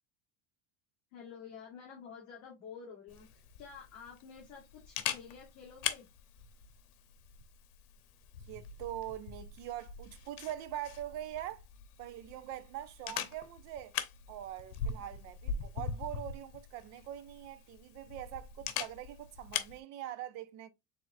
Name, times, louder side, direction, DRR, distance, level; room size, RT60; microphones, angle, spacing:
voice 1, 1.1-6.1, left 6 dB, 40° left, 1.7 m, -50 dB
Camera, 3.1-19.8, left 8 dB, 85° left, 1.0 m, -42 dB
voice 2, 8.5-11.6 12.0-14.0 14.3-20.7, right 12 dB, 40° right, 0.5 m, -43 dB
4.7 x 3.6 x 2.6 m
cardioid pair, 170°, 44 cm